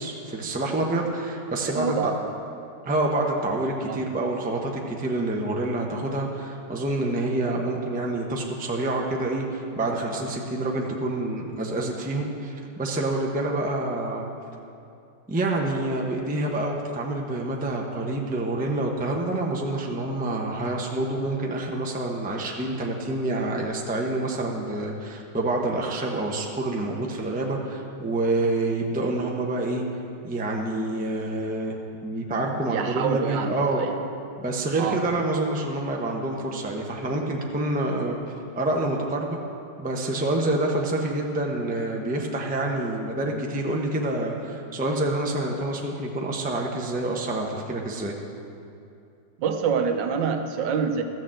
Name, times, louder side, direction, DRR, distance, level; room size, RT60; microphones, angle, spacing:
voice 1, 0.0-2.1 2.8-14.3 15.3-29.8 30.2-33.8 34.4-38.2 38.6-39.4 39.8-48.1, right 2 dB, 10° right, 0 dB, 0.5 m, -27 dB
voice 2, 1.7-2.3 3.9-4.0 32.7-33.9 34.8-35.0 49.4-51.0, right 6 dB, 75° right, 6 dB, 1.4 m, -26 dB
13.5 x 6.6 x 7.6 m, 2.6 s
omnidirectional pair, 2.1 m